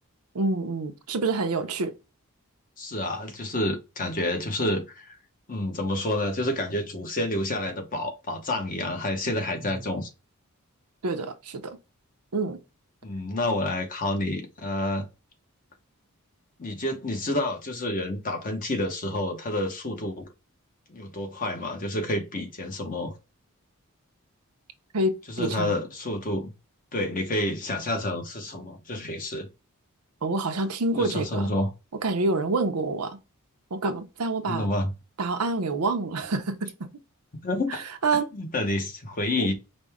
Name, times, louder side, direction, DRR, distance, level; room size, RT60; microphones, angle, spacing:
voice 1, 0.3-1.9 11.0-11.8 12.3-12.6 24.9-25.8 30.2-31.5 32.0-33.2 33.7-34.7 35.2-36.9 37.7-38.3 39.4-39.5, right 3 dB, 80° right, 0.7 m, -27 dB
voice 2, 2.8-5.2 5.5-10.1 13.0-15.1 16.6-20.3 20.9-23.1 25.3-26.5 26.9-29.5 30.9-31.7 34.5-34.9 37.3-37.8 38.3-39.5, left 1 dB, 35° left, 1.0 m, -29 dB
5.1 x 2.2 x 3.5 m
head